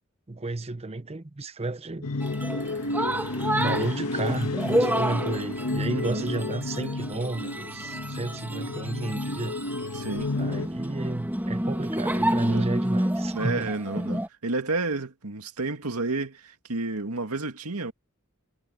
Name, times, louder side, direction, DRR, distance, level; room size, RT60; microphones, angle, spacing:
voice 1, 0.3-2.1 3.6-9.6 10.4-13.7, right 2 dB, 30° right, 0.7 m, -32 dB
sound 1, 2.0-10.7, left 2 dB, 80° left, 1.8 m, -31 dB
sound 2, 2.2-14.3, right 1 dB, 10° right, 2.1 m, -30 dB
voice 2, 5.9-6.3 9.9-10.3 12.4-12.7 13.3-17.9, right 3 dB, 85° right, 2.1 m, -31 dB
head